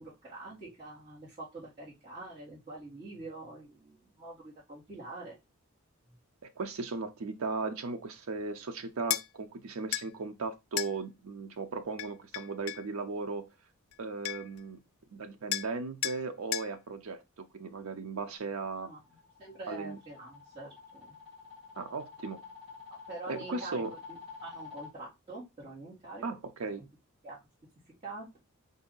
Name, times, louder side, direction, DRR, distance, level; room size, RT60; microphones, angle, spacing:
voice 1, 0.0-5.4 18.8-19.0 19.4-21.2 23.1-23.8 24.1-26.2 27.2-27.4 28.0-28.4, right 2 dB, 25° right, 1.9 m, -45 dB
voice 2, 6.4-13.5 14.0-14.8 15.1-18.9 19.7-20.0 21.8-22.4 23.3-23.9 26.2-26.9, right 4 dB, 80° right, 0.6 m, -37 dB
sound 1, 9.1-9.3 9.9-10.1 10.8-10.9 12.0-12.9 13.9-14.0 14.2-14.6 15.5-15.7 16.0-16.2 16.5-16.7, left 14 dB, 75° left, 0.3 m, -33 dB
sound 2, 18.7-24.9, left 5 dB, 5° right, 2.1 m, -49 dB
4.5 x 2.7 x 3.8 m
head